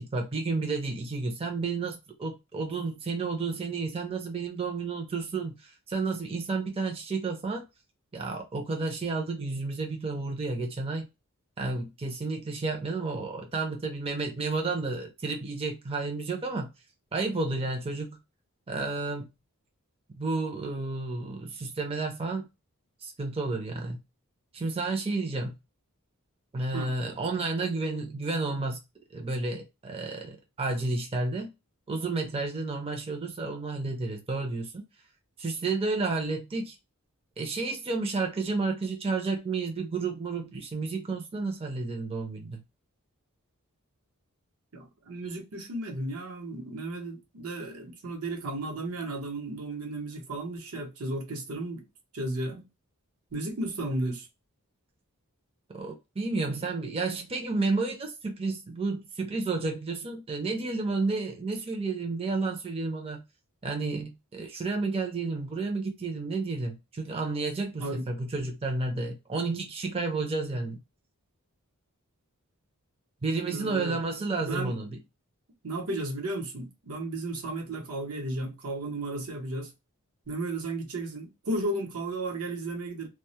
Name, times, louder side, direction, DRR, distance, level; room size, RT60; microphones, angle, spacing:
voice 1, 0.0-7.6 8.1-11.1 11.6-16.7 17.1-18.1 18.7-19.3 20.2-22.5 23.0-24.0 24.5-25.5 26.5-28.8 29.1-31.5 31.9-34.7 35.4-36.8 37.4-42.6 55.7-63.2 63.6-70.8 73.2-74.9, right 3 dB, 25° right, 0.5 m, -31 dB
voice 2, 44.7-51.8 52.1-52.7 53.3-54.3 67.8-68.1 73.5-74.0 74.4-74.8 75.6-79.7 80.3-83.1, right 2 dB, 80° right, 0.8 m, -34 dB
2.2 x 2.0 x 2.8 m
head